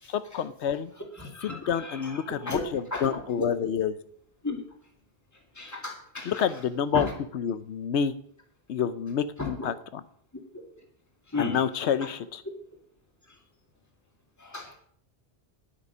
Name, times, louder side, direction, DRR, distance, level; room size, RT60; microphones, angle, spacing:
voice 1, 0.1-0.9 1.4-4.0 6.2-7.1 7.3-8.1 8.7-10.0 11.4-12.4, left 8 dB, 90° left, 14 dB, 1.0 m, -28 dB
voice 2, 1.2-3.5 4.4-4.6 5.6-6.4 6.9-7.1 9.4-9.7 11.3-11.6 14.4-14.7, left 3 dB, 15° left, 1 dB, 2.0 m, -34 dB
10.0 x 8.7 x 5.5 m, 0.64 s
omnidirectional pair, 1.1 m